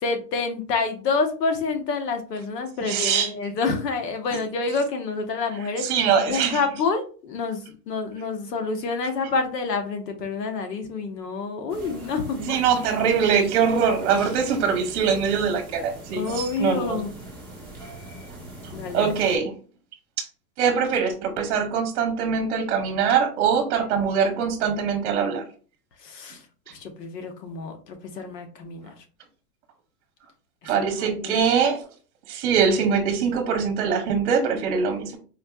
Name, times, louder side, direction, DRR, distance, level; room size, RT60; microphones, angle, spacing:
voice 1, 0.0-6.0 6.3-12.6 16.2-17.1 18.7-19.1 26.0-29.0 30.6-31.4, left 4 dB, 85° left, 5 dB, 1.1 m, -28 dB
voice 2, 2.9-3.3 5.8-6.6 12.4-17.0 18.9-19.5 20.2-20.3 20.6-25.4 30.6-31.8 32.3-35.2, right 6 dB, 45° right, 4 dB, 0.9 m, -23 dB
sound 1, 11.7-19.4, right 1 dB, 5° left, 1.1 m, -41 dB
4.3 x 2.7 x 2.3 m, 0.39 s
supercardioid pair, 160°, 48 cm